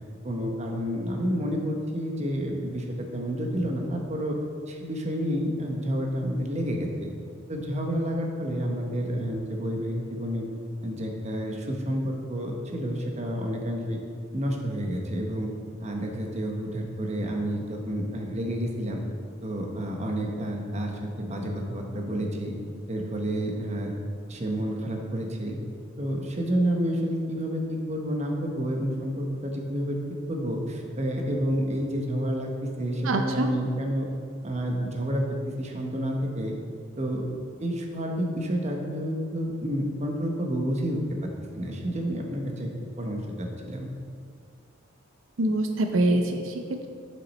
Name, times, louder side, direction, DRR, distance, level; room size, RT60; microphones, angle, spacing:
voice 1, 0.2-4.4 4.7-7.1 7.5-10.5 10.8-14.0 14.3-15.5 15.8-19.0 19.4-20.9 21.2-22.5 22.9-23.9 24.3-25.6 26.0-30.0 30.3-34.1 34.4-36.5 37.0-37.2 37.6-41.0 41.5-42.7 43.0-43.9, equal, 35° right, 1 dB, 0.9 m, -29 dB
voice 2, 33.0-33.5 45.4-46.9, right 1 dB, 85° right, 4 dB, 0.6 m, -25 dB
7.7 x 6.2 x 4.2 m, 2.1 s
head